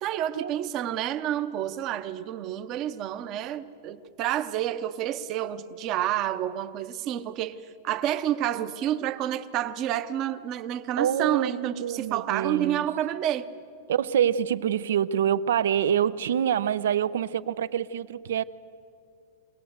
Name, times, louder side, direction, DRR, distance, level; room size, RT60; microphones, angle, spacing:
voice 1, 0.0-7.6 7.8-13.5, right 11 dB, 25° right, 0.7 m, -29 dB
voice 2, 11.0-12.9 13.9-18.4, right 9 dB, 80° right, 0.6 m, -26 dB
23.5 x 18.0 x 8.0 m
supercardioid pair, 175°, 0 cm